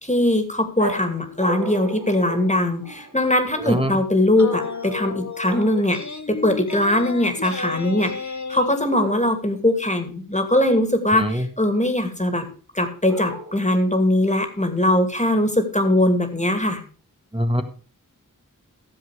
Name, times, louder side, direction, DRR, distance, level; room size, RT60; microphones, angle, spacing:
voice 1, 0.0-12.5 12.7-16.8, left 1 dB, 20° left, 6 dB, 2.5 m, -21 dB
sound 1, 0.8-3.3 4.4-5.1 5.5-5.9 8.9-9.6 13.1-13.8, right 2 dB, 65° right, 2.3 m, -34 dB
voice 2, 3.6-4.0 11.1-11.5 17.3-17.6, equal, 15° right, 5 dB, 1.5 m, -23 dB
sound 2, 4.4-8.8, left 4 dB, 55° left, 1.2 m, -32 dB
15.0 x 7.3 x 4.9 m, 0.39 s
wide cardioid pair, 50°, 34 cm